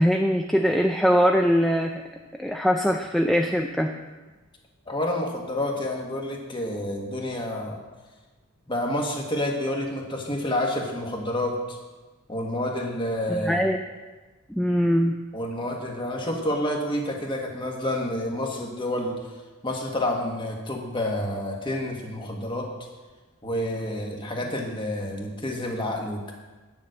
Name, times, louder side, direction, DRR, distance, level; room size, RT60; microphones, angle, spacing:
voice 1, 0.0-1.9 2.4-3.9 13.3-13.8 14.5-15.2, equal, ahead, 3 dB, 0.4 m, -22 dB
voice 2, 4.9-7.8 8.7-11.8 12.3-13.6 15.3-19.2 19.6-22.7 23.4-26.3, left 1 dB, 20° left, 1 dB, 1.5 m, -29 dB
9.6 x 7.2 x 6.5 m, 1.3 s
head